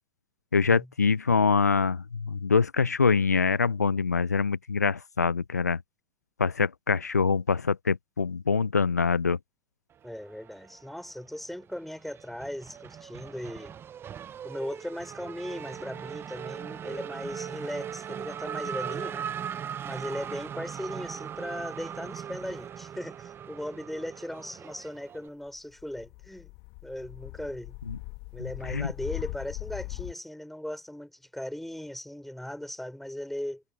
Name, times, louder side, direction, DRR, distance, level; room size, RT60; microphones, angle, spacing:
voice 1, 0.5-5.8 6.4-9.4 27.9-28.0 28.4-28.9, left 5 dB, 85° left, 0.9 m, -25 dB
voice 2, 10.0-13.7 14.4-19.3 19.8-26.5 26.8-27.8 28.3-33.6, left 1 dB, ahead, 6.1 m, -38 dB
Race car auto racing / Accelerating revving vroom, 10.3-11.3 11.6-25.3, right 9 dB, 25° right, 1.0 m, -39 dB
sound 1, 25.8-30.1, left 29 dB, 50° left, 2.2 m, -40 dB
figure-of-eight pair, 90°, 9 cm